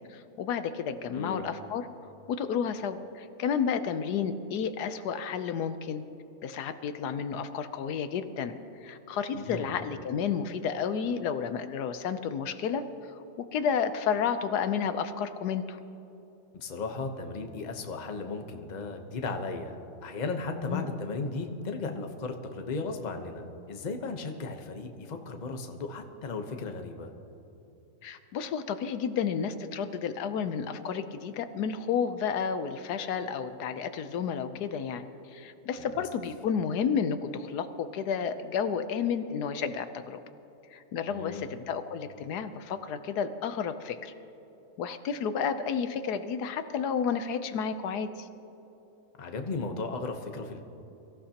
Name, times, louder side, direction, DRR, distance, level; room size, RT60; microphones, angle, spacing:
voice 1, 0.1-1.9 2.3-6.0 6.4-8.5 8.8-12.8 13.4-15.8 20.7-21.0 28.0-40.2 40.7-44.1 44.8-48.3, left 7 dB, 80° left, 10 dB, 1.2 m, -31 dB
voice 2, 9.3-9.8 16.5-27.1 35.8-36.0 41.1-41.4 49.2-50.6, left 3 dB, 35° left, 5 dB, 0.9 m, -36 dB
23.5 x 15.0 x 2.9 m, 3.0 s
omnidirectional pair, 1.7 m